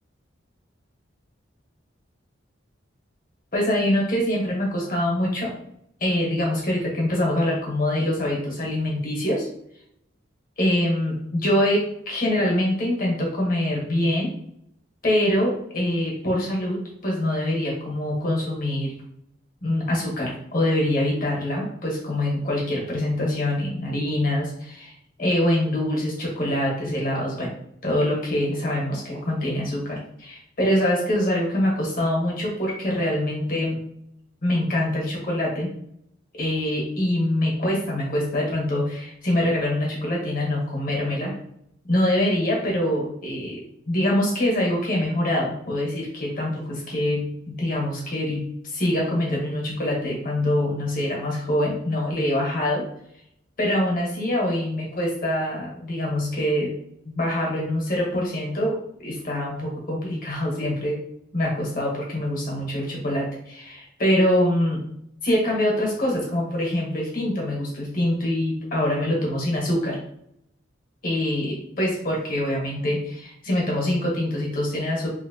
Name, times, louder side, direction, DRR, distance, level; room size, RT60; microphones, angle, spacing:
voice 1, 3.5-5.5 6.0-9.5 10.6-14.3 15.0-16.8 17.0-18.9 19.6-24.9 25.2-27.5 27.8-33.8 34.4-35.7 36.3-41.3 41.9-43.6 43.9-52.8 53.6-56.7 57.0-58.8 59.0-61.0 61.3-64.8 65.2-70.0 71.0-75.1, left 1 dB, 45° left, -2 dB, 1.1 m, -24 dB
3.0 x 2.9 x 2.8 m, 0.72 s
head